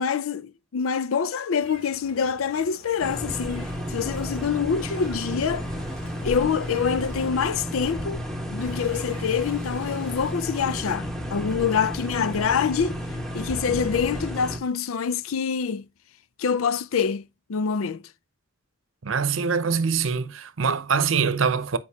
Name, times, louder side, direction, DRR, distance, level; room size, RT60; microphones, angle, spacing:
voice 1, 0.0-5.7 6.2-8.2 8.5-13.0 13.3-15.9 16.4-18.0, left 6 dB, 85° left, 0.5 m, -26 dB
Meow, 1.6-7.6 8.6-10.3, left 2 dB, 65° left, 3.1 m, -47 dB
sound 1, 3.0-14.6, equal, ahead, 1.2 m, -32 dB
voice 2, 19.0-21.8, right 5 dB, 70° right, 0.7 m, -24 dB
8.3 x 5.1 x 2.8 m
head